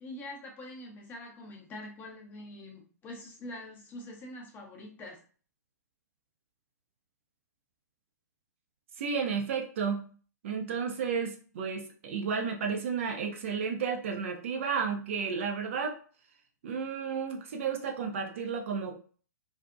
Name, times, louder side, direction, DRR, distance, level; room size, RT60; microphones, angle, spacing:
voice 1, 0.0-5.2, left 1 dB, 15° left, 0 dB, 0.6 m, -44 dB
voice 2, 9.0-10.1 10.4-16.0 16.6-19.0, right 6 dB, 45° right, 3 dB, 0.4 m, -32 dB
2.6 x 2.0 x 2.4 m, 0.40 s
figure-of-eight pair, 115°, 10 cm